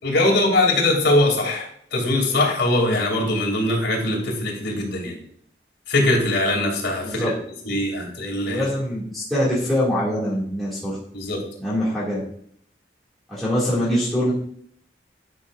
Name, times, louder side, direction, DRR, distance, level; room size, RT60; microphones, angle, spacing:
voice 1, 0.0-5.2 5.9-7.3 7.6-8.7 11.1-11.4, left 1 dB, 70° left, -1 dB, 2.7 m, -21 dB
voice 2, 8.5-11.0 11.6-12.2 13.3-14.3, equal, ahead, -10 dB, 2.2 m, -23 dB
11.0 x 6.2 x 2.5 m, 0.64 s
head